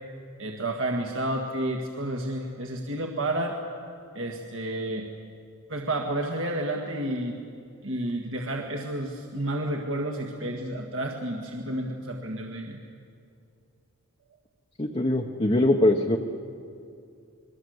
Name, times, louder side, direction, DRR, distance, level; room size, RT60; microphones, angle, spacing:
voice 1, 0.4-3.6 4.2-5.1 5.7-7.3 7.8-12.8, right 1 dB, 60° right, 1 dB, 1.8 m, -30 dB
voice 2, 14.8-16.2, left 1 dB, 25° left, 1 dB, 1.0 m, -22 dB
28.0 x 21.5 x 8.0 m, 2.5 s
head